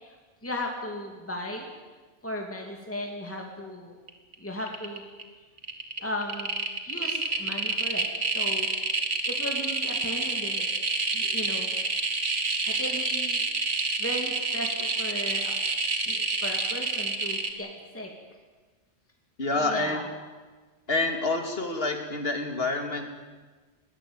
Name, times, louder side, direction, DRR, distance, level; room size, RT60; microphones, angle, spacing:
voice 1, 0.4-1.7 2.2-3.9 4.4-5.0 6.0-6.5 6.8-8.1 8.3-8.7 9.2-10.7 11.1-11.7 12.7-15.5 16.0-18.1 19.5-20.0, left 1 dB, 10° left, 1 dB, 2.8 m, -36 dB
sound 1, 4.1-4.3 4.6-5.2 5.6-17.5, right 3 dB, 80° right, 2.2 m, -28 dB
voice 2, 19.4-20.0 20.9-23.2, left 2 dB, 55° left, 4 dB, 2.8 m, -28 dB
21.0 x 18.5 x 9.1 m, 1.4 s
omnidirectional pair, 1.2 m